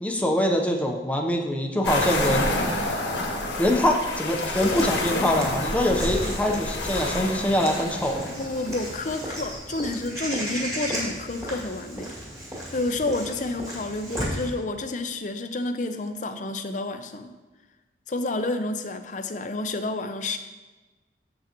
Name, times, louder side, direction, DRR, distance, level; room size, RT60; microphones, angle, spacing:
voice 1, 0.0-2.5 3.6-8.2, left 1 dB, 10° left, 1 dB, 0.7 m, -24 dB
sound 1, 1.8-9.5, left 2 dB, 80° left, 1.4 m, -29 dB
Walk footsteps / Bird vocalization bird call bird song, 4.5-14.5, right 1 dB, 20° right, 2.2 m, -35 dB
voice 2, 8.4-12.1 12.7-17.3 18.1-20.4, left 2 dB, 45° left, 7 dB, 0.6 m, -30 dB
8.2 x 7.4 x 3.0 m, 1.2 s
head